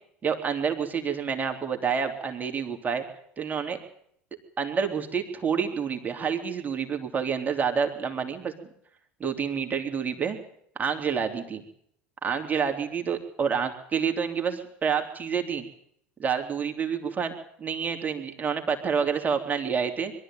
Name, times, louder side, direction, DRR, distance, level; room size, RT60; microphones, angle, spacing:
voice 1, 0.2-3.0 3.4-3.8 4.6-8.5 9.2-10.4 10.7-11.6 12.2-15.7 16.2-17.3 17.6-20.1, right 6 dB, 30° right, 4 dB, 3.2 m, -28 dB
22.5 x 13.0 x 9.2 m, 0.69 s
hypercardioid pair, 80°, 6 cm